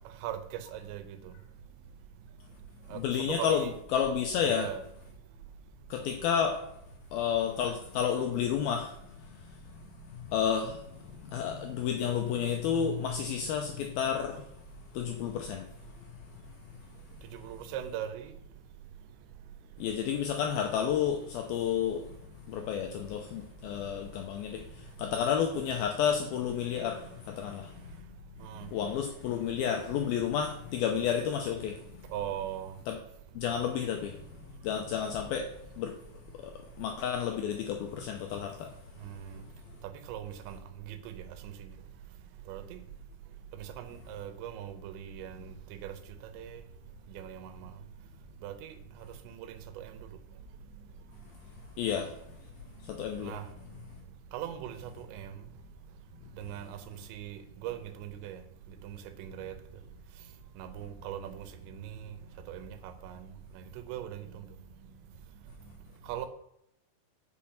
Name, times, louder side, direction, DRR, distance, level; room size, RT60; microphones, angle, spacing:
voice 1, 0.7-1.0 2.9-3.0 3.3-3.7 4.4-4.8 17.4-18.3 28.4-28.7 32.1-32.7 39.0-39.3 40.1-40.6 40.9-41.1 41.4-41.5 42.5-42.6 43.8-45.5 45.8-45.9 46.4-46.6 47.1-47.7 48.4-48.7 49.3-49.4 49.8-49.9 53.2-53.4 54.3-55.3 56.4-56.8 57.1-58.4 58.8-59.5 60.6-61.9 62.5-62.8 63.0-63.2 63.9-64.2 66.1-66.3, right 11 dB, 85° right, 9 dB, 3.2 m, -39 dB
voice 2, 2.9-4.7 5.9-6.6 7.1-9.0 10.3-10.8 11.2-14.4 14.9-15.7 19.8-22.0 22.5-27.7 28.7-31.8 32.9-33.0 33.4-34.2 34.6-35.5 35.8-35.9 36.4-36.5 36.8-38.7 51.8-52.1 52.8-53.3, left 8 dB, 80° left, 3 dB, 2.2 m, -31 dB
8.6 x 6.1 x 5.7 m, 0.79 s
omnidirectional pair, 5.1 m